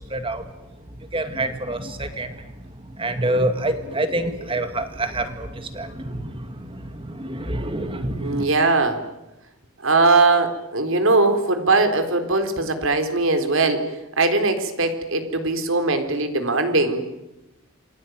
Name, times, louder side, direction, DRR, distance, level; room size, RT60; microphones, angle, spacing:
voice 1, 0.1-0.4 1.1-2.3 3.0-6.5 6.7-8.4, right 1 dB, 25° right, 8 dB, 2.1 m, -26 dB
voice 2, 8.2-9.0 9.8-13.8 14.2-17.1, right 3 dB, 65° right, 7 dB, 4.2 m, -20 dB
28.5 x 21.5 x 9.5 m, 0.97 s
head